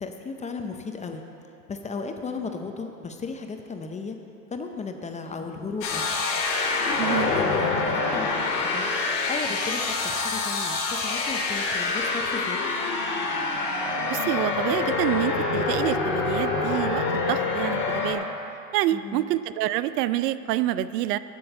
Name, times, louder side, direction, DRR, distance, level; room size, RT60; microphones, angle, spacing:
voice 1, 0.0-1.2 1.7-4.2 4.5-6.2 6.9-8.3 8.6-8.9 9.3-12.7 18.9-19.2, left 4 dB, 15° left, 5 dB, 0.5 m, -35 dB
sound 1, 5.8-18.1, left 3 dB, 55° left, 2.2 m, -26 dB
voice 2, 7.0-7.3 14.1-18.3 18.7-21.2, right 14 dB, 75° right, 15 dB, 0.5 m, -27 dB
8.0 x 7.0 x 7.7 m, 2.8 s
hypercardioid pair, 110°, 49 cm